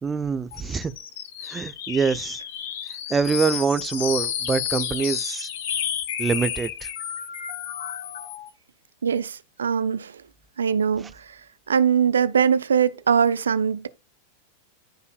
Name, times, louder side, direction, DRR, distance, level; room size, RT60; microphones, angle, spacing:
voice 1, 0.0-0.9 1.5-2.4 3.1-5.5 6.2-6.9, right 5 dB, 15° right, 0.6 m, -25 dB
sound 1, 0.5-8.5, left 9 dB, 55° left, 1.4 m, -31 dB
voice 2, 9.0-10.1 10.6-11.4 11.7-13.9, right 7 dB, 70° right, 0.5 m, -22 dB
14.5 x 5.4 x 2.4 m
figure-of-eight pair, 90°, 0 cm